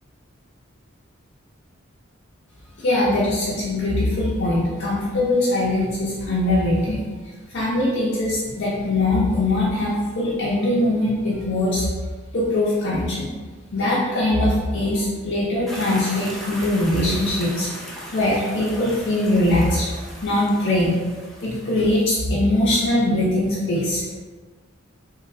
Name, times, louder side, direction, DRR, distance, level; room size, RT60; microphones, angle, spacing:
voice 1, 2.8-7.0 7.5-11.9 12.3-13.3 13.7-17.7 18.1-19.9 20.2-21.0 21.4-24.0, left 1 dB, 60° left, -7 dB, 0.6 m, -21 dB
sound 1, 15.7-22.0, equal, ahead, 0.4 m, -38 dB
3.0 x 2.3 x 2.6 m, 1.4 s
head